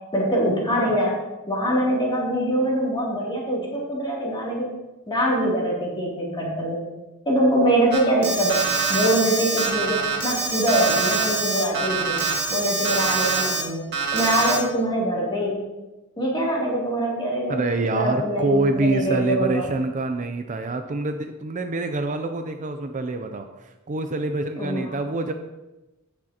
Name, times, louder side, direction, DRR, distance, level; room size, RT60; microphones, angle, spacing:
voice 1, 0.1-1.2 1.5-4.7 5.1-6.8 7.2-8.6 8.9-12.2 12.5-15.6 16.2-19.7 24.6-24.9, equal, 20° left, -5 dB, 2.9 m, -23 dB
Alarm, 7.9-13.6 13.9-14.6, right 4 dB, 50° right, 2.0 m, -24 dB
voice 2, 17.5-25.3, right 2 dB, 35° right, 7 dB, 0.5 m, -26 dB
16.0 x 6.4 x 2.9 m, 1.1 s
head